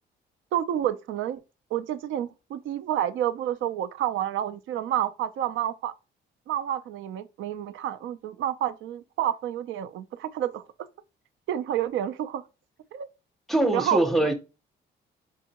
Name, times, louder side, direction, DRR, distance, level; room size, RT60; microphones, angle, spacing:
voice 1, 0.5-1.4 1.7-5.9 6.5-10.6 11.5-12.4 12.9-13.1 13.7-14.3, right 11 dB, 75° right, 0.4 m, -29 dB
voice 2, 13.5-14.3, right 1 dB, ahead, 0.7 m, -23 dB
4.7 x 2.5 x 2.8 m
cardioid pair, 90°, 20 cm